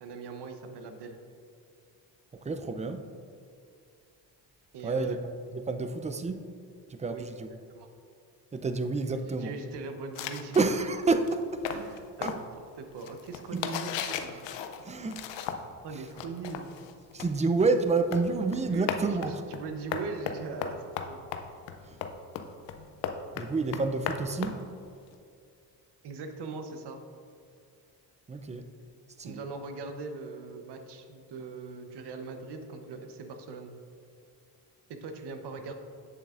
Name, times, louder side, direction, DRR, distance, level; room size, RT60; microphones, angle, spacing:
voice 1, 0.0-1.2 4.7-5.2 7.1-7.2 7.7-7.9 9.3-10.6 11.7-12.4 12.8-14.4 15.8-16.7 18.7-18.9 19.5-21.2 26.0-27.0 29.2-33.7 34.9-35.7, right 4 dB, 70° right, 6 dB, 0.9 m, -40 dB
voice 2, 2.4-3.1 4.8-5.2 5.5-6.4 6.9-7.5 8.5-9.5 10.5-11.8 12.2-12.4 13.5-13.7 14.8-15.2 15.9-16.0 17.1-19.4 21.9-22.0 23.4-24.6 28.3-28.7 29.2-29.4, right 3 dB, 15° right, 8 dB, 0.4 m, -29 dB
sound 1, 10.2-15.8 16.1-25.1, left 7 dB, 85° left, 0.6 m, -37 dB
8.5 x 7.1 x 2.5 m, 2.4 s
cardioid pair, 70°, 42 cm